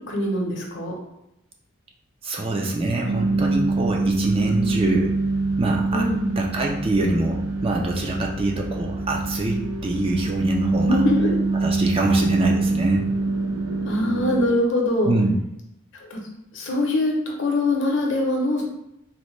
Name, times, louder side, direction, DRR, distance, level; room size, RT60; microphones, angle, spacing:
voice 1, 0.1-0.9 5.9-6.3 10.8-11.4 13.9-15.1 16.1-16.2 16.5-17.1 17.4-18.6, left 1 dB, 55° left, 0 dB, 0.7 m, -23 dB
voice 2, 2.2-5.1 5.6-6.1 6.4-11.0 11.6-13.1 15.0-15.4, right 2 dB, 25° right, 0 dB, 0.3 m, -24 dB
sound 1, 3.1-14.5, right 3 dB, 85° right, 0.5 m, -24 dB
4.0 x 2.1 x 3.1 m, 0.84 s
head